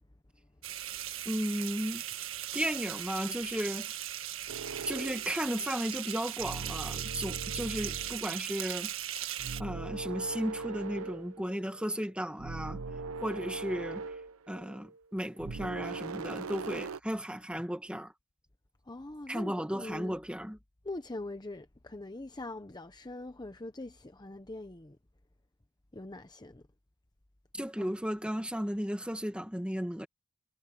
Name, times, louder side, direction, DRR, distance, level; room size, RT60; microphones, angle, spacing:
sound 1, 0.6-9.6, right 12 dB, 65° right, 1.6 m, -38 dB
voice 1, 1.3-2.0 2.5-4.0 4.9-8.9 9.6-12.8 13.2-14.0 14.5-18.1 19.3-20.6 27.5-30.1, equal, 5° right, 1.8 m, -35 dB
sound 2, 4.5-5.6 6.4-8.3 9.4-12.1 12.4-15.0 15.4-17.0, right 4 dB, 85° right, 0.7 m, -40 dB
voice 2, 18.9-20.2 20.8-25.0 25.9-26.6 27.8-28.0, left 2 dB, 20° left, 0.9 m, -43 dB
head